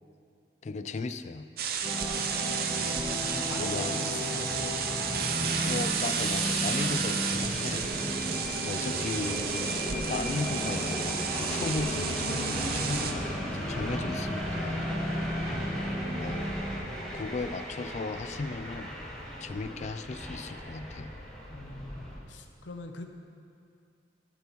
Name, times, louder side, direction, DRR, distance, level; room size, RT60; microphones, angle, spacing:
voice 1, 0.6-1.5 3.6-4.0 5.6-7.9 8.6-9.8 10.1-11.1 11.4-14.9 16.1-16.4 17.1-18.9 19.4-21.1, left 3 dB, 40° left, 11 dB, 0.3 m, -36 dB
sound 1, 1.6-13.1, right 7 dB, 55° right, 0.6 m, -32 dB
sound 2, 1.8-18.1, equal, 30° right, 2.4 m, -35 dB
voice 2, 3.5-4.5 21.5-23.1, left 2 dB, 80° left, 5 dB, 0.7 m, -41 dB
Subway metro underground, 4.3-22.2, equal, 5° left, 1.4 m, -38 dB
15.5 x 7.0 x 3.1 m, 2.4 s
head